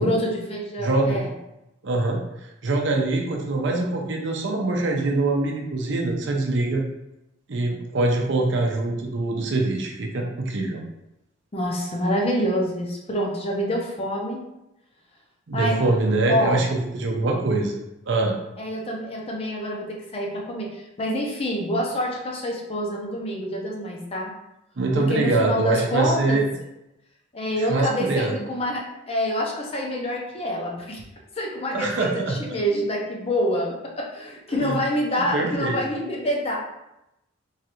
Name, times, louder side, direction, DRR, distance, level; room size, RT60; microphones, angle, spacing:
voice 1, 0.0-1.3 11.5-14.4 15.5-15.8 16.3-16.6 18.6-24.3 24.9-26.5 27.3-31.0 31.4-36.6, equal, 30° left, -2 dB, 0.6 m, -26 dB
voice 2, 0.8-1.2 1.8-6.8 7.5-10.8 15.5-17.8 18.1-18.4 24.8-26.4 27.7-28.4 31.7-32.4 34.6-34.8 35.3-35.8, right 2 dB, 60° right, 1 dB, 0.5 m, -24 dB
3.1 x 2.4 x 2.9 m, 0.88 s
head